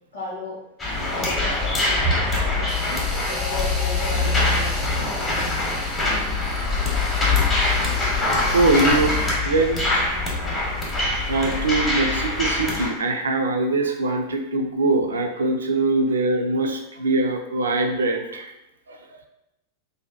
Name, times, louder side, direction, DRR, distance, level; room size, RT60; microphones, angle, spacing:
voice 1, 0.1-0.6 1.2-5.2 16.1-16.2, left 2 dB, 70° left, -6 dB, 0.5 m, -37 dB
sound 1, 0.8-12.9, left 2 dB, 20° left, 0.7 m, -23 dB
voice 2, 8.3-10.1 10.5-10.8 11.3-18.5 18.9-19.0, right 2 dB, 70° right, 3 dB, 0.3 m, -23 dB
2.6 x 2.1 x 2.3 m, 0.88 s
figure-of-eight pair, 90°, 0 cm